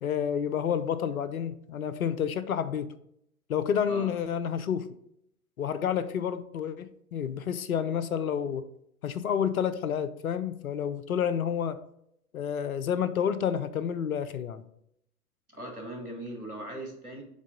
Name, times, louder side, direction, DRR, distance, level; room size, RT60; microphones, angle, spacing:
voice 1, 0.0-3.0 3.5-4.9 5.6-8.7 9.0-11.8 12.3-14.6, left 8 dB, 70° left, 0.6 m, -29 dB
voice 2, 15.5-17.2, right 1 dB, 85° right, 1.7 m, -39 dB
7.3 x 3.7 x 3.8 m
figure-of-eight pair, 100°, 44 cm